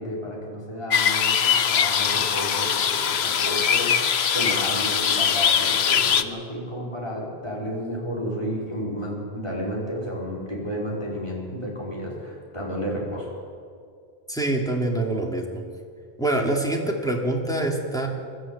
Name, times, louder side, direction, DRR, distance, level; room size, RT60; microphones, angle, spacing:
voice 1, 0.0-13.3, equal, 25° left, -4 dB, 5.3 m, -32 dB
sound 1, 0.9-6.2, left 8 dB, 75° left, 1.1 m, -22 dB
voice 2, 14.3-15.6 16.2-18.1, right 2 dB, 5° left, -1 dB, 2.9 m, -25 dB
22.5 x 13.0 x 9.0 m, 2.2 s
omnidirectional pair, 1.1 m